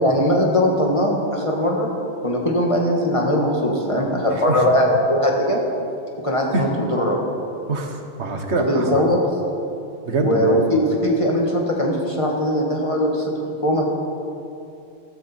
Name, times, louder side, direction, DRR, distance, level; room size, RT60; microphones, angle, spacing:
voice 1, 0.0-1.9 2.2-5.6 6.2-7.2 8.6-9.2 10.2-13.3 13.6-13.9, equal, 30° left, -1 dB, 1.8 m, -20 dB
voice 2, 7.7-9.0 10.1-10.6, right 3 dB, 90° right, 4 dB, 1.6 m, -24 dB
15.5 x 13.0 x 4.5 m, 2.7 s
omnidirectional pair, 1.1 m